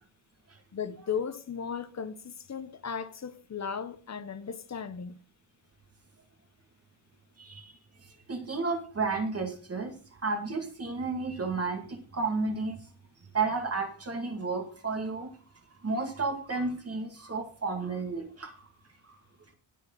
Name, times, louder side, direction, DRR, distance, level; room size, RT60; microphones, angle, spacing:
voice 1, 0.7-5.2, left 7 dB, 35° left, 1.0 m, -36 dB
voice 2, 7.4-7.7 8.0-12.8 13.3-15.3 15.8-18.6 19.1-19.2, right 3 dB, 30° right, 2.2 m, -32 dB
18.5 x 6.4 x 4.0 m
wide cardioid pair, 175°, 47 cm